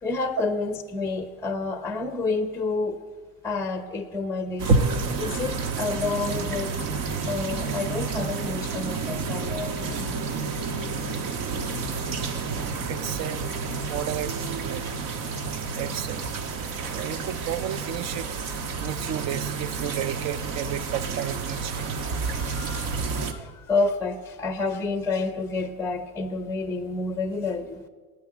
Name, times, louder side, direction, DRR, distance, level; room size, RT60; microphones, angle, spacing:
voice 1, 0.0-3.0 3.4-4.7 5.2-6.9 7.3-10.9 11.2-11.9 12.1-12.4 21.8-27.8, left 3 dB, 5° left, 9 dB, 0.8 m, -30 dB
sound 1, 4.6-23.3, right 4 dB, 55° right, 1.4 m, -29 dB
voice 2, 12.9-13.4 13.9-14.3 14.6-14.9 15.7-16.2 16.9-18.3 18.8-21.9, right 11 dB, 35° right, 17 dB, 0.6 m, -33 dB
9.5 x 9.3 x 7.5 m, 1.4 s
hypercardioid pair, 95°, 45 cm